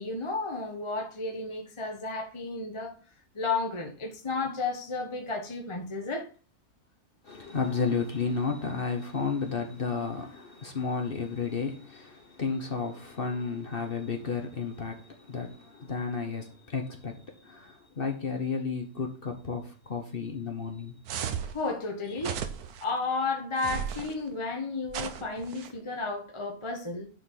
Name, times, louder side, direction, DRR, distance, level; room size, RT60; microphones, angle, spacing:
voice 1, 0.0-2.9 3.3-6.3 21.5-22.5 22.8-27.1, left 3 dB, 20° left, 1.0 m, -32 dB
voice 2, 7.2-20.9, left 5 dB, 40° left, 1.2 m, -32 dB
sound 1, 21.1-21.6 22.2-22.8 23.6-24.1 24.9-25.7, right 8 dB, 80° right, 1.3 m, -35 dB
10.0 x 4.7 x 3.8 m
omnidirectional pair, 1.6 m